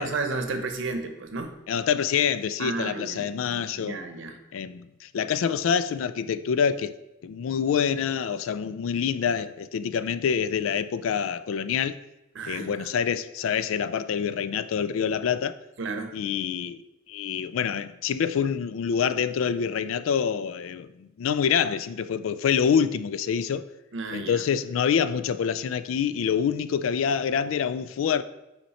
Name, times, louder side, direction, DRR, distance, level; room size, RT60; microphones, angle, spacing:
voice 1, 0.0-1.6 2.6-3.3 3.5-4.4 12.3-12.9 15.8-16.1 23.9-24.5, right 3 dB, 65° right, 0.8 m, -32 dB
voice 2, 1.7-4.0 4.5-6.9 7.2-11.9 12.5-15.6 16.1-16.8 17.1-23.6 24.1-28.2, left 7 dB, 75° left, 0.3 m, -26 dB
5.7 x 4.4 x 4.2 m
head